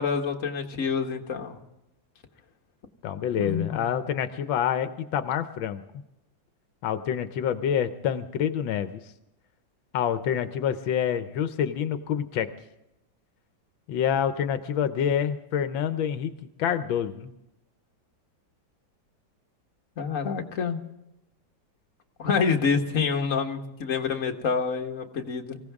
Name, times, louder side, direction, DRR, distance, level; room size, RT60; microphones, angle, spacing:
voice 1, 0.0-1.6 3.4-3.9 20.0-20.8 22.2-25.6, left 5 dB, 45° left, 3 dB, 1.7 m, -27 dB
voice 2, 3.0-5.8 6.8-9.0 9.9-12.5 13.9-16.3 16.6-17.3, left 8 dB, 85° left, 10 dB, 1.5 m, -27 dB
25.0 x 16.0 x 3.6 m, 0.90 s
omnidirectional pair, 2.1 m